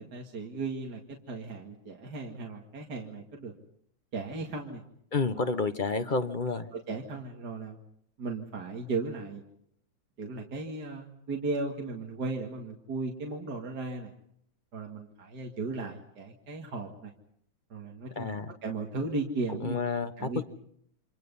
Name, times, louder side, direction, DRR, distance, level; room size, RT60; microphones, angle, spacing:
voice 1, 0.0-3.5 4.1-4.8 5.4-5.5 6.7-7.8 8.2-9.4 10.2-14.1 14.7-17.1 17.7-18.3 18.6-19.8 20.2-20.4, right 3 dB, 55° right, 1 dB, 2.6 m, -36 dB
voice 2, 5.1-6.7 18.2-18.5 19.6-20.4, left 4 dB, 35° left, 9 dB, 0.9 m, -30 dB
28.5 x 26.5 x 5.5 m, 0.69 s
omnidirectional pair, 2.1 m